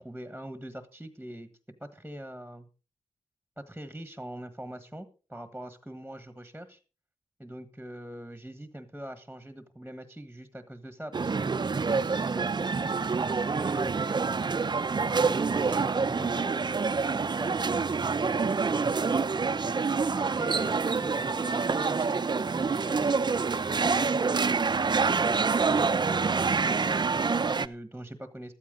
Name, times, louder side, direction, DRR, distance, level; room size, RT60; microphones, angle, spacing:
voice 1, 0.0-1.5 1.8-2.7 3.6-6.8 7.4-14.6 14.9-24.8 25.2-28.5, right 1 dB, 5° right, 11 dB, 1.4 m, -43 dB
sound 1, 11.1-27.7, right 4 dB, 35° right, 0.7 m, -27 dB
14.0 x 13.0 x 3.8 m, 0.34 s
cardioid pair, 90°, 12 cm